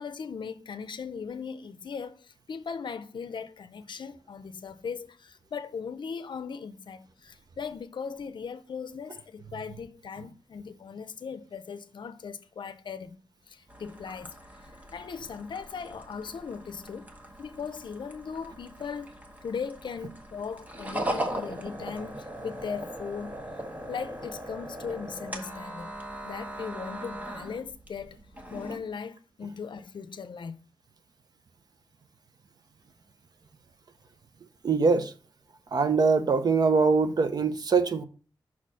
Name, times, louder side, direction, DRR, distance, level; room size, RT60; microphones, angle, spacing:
voice 1, 0.0-17.1 17.4-19.1 19.4-23.4 23.9-26.0 26.2-28.2 28.5-30.6, left 6 dB, 70° left, 0.5 m, -38 dB
sound 1, 13.7-28.8, right 1 dB, 20° right, 1.0 m, -39 dB
voice 2, 34.6-35.1 35.7-38.0, right 4 dB, 50° right, 0.6 m, -23 dB
5.8 x 4.3 x 6.2 m
wide cardioid pair, 170°, 8 cm